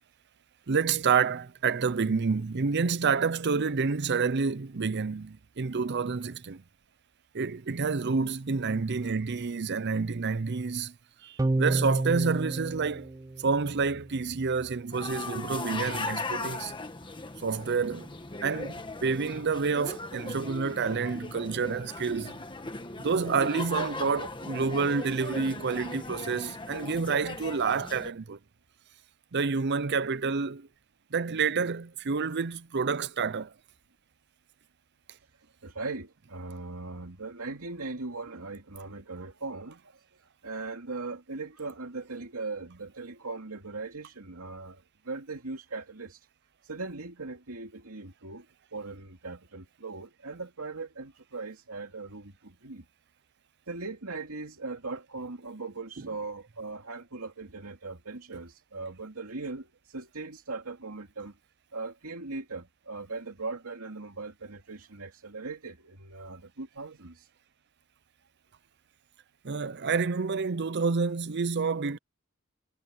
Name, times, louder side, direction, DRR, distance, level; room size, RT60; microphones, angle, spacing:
voice 1, 0.7-6.6 7.3-10.9 11.2-13.1 13.4-16.7 17.4-18.1 18.4-22.4 23.0-28.4 29.3-30.7 31.1-33.5 56.0-56.1 69.4-72.0, right 5 dB, 50° right, 0.6 m, -28 dB
sound 1, 11.4-14.0, right 2 dB, 15° right, 0.3 m, -30 dB
sound 2, 14.9-28.1, left 3 dB, 25° left, 1.5 m, -38 dB
voice 2, 35.6-46.3 46.6-48.5 48.7-52.8 53.7-61.4 61.7-67.3, right 3 dB, 90° right, 2.7 m, -39 dB
head